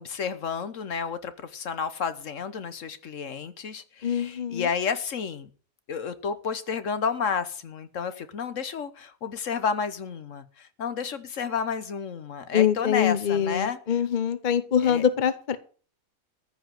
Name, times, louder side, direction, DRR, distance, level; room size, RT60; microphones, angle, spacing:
voice 1, 0.0-5.5 5.9-13.8 14.8-15.0, left 6 dB, 65° left, 1.3 m, -31 dB
voice 2, 4.0-4.7 12.5-15.6, left 8 dB, 40° left, 0.9 m, -24 dB
14.5 x 5.6 x 9.0 m
omnidirectional pair, 1.4 m